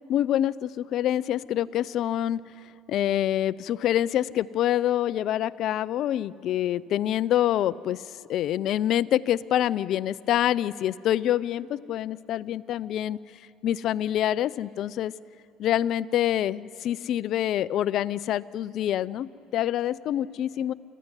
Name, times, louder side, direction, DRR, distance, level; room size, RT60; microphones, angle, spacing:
voice 1, 0.1-2.4 2.9-8.0 8.3-13.2 13.6-15.1 15.6-20.7, left 12 dB, 60° left, 17 dB, 0.5 m, -26 dB
29.0 x 14.5 x 9.8 m, 2.6 s
supercardioid pair, 100°, 0 cm